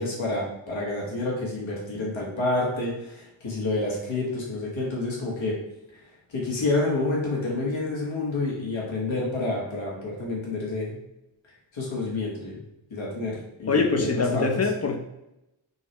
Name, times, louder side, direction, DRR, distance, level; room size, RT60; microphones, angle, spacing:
voice 1, 0.0-5.5 6.3-11.0 11.7-12.6 12.9-14.5, left 2 dB, 75° left, 1.2 m, -28 dB
voice 2, 13.7-15.0, left 4 dB, 30° left, 0.6 m, -23 dB
5.4 x 2.1 x 2.9 m
wide cardioid pair, 60°, 48 cm